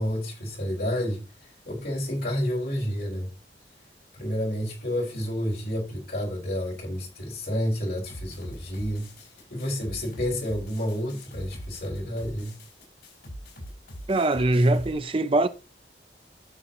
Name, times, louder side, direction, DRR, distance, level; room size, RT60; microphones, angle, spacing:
voice 1, 0.0-3.3 4.1-12.6, equal, 60° left, 5.6 m, -30 dB
sound 1, 8.1-14.9, equal, 85° left, 6.3 m, -42 dB
voice 2, 14.1-15.5, right 2 dB, 30° right, 0.5 m, -22 dB
12.5 x 6.8 x 3.0 m
head